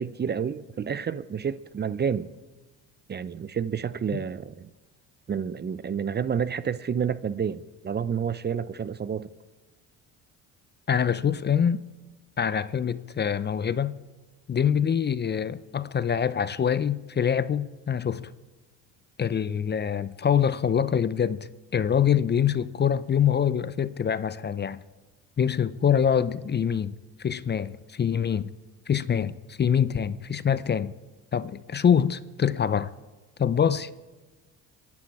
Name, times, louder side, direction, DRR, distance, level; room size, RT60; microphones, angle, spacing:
voice 1, 0.0-2.3 3.1-4.7 5.3-9.3, right 7 dB, 30° right, 0.6 m, -29 dB
voice 2, 10.9-11.8 12.4-14.0 14.5-18.3 19.2-24.8 25.4-28.5 28.9-30.9 31.3-32.9 33.4-33.9, left 8 dB, 30° left, 0.6 m, -25 dB
25.0 x 10.5 x 4.7 m
supercardioid pair, 80°, 36 cm